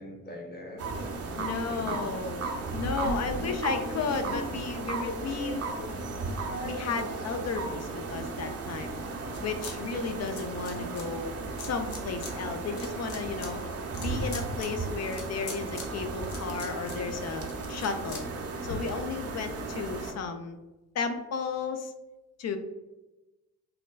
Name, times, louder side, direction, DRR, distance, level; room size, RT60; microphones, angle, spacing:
voice 1, 0.0-2.1 3.1-3.6, left 1 dB, 25° left, 1 dB, 0.9 m, -43 dB
sound 1, 0.8-20.1, right 3 dB, 35° right, 0.6 m, -36 dB
voice 2, 1.4-5.6 6.6-9.0 9.4-11.3 11.6-13.6 14.0-18.3 18.7-20.6 20.9-21.9 22.4-22.6, left 5 dB, 40° left, 7 dB, 0.4 m, -34 dB
sound 2, 2.8-7.8 8.3-9.7 10.0-11.0 11.6-12.3 12.7-18.7, left 2 dB, 70° left, 0.7 m, -41 dB
3.7 x 2.2 x 2.2 m, 1.1 s
hypercardioid pair, 50°, 40 cm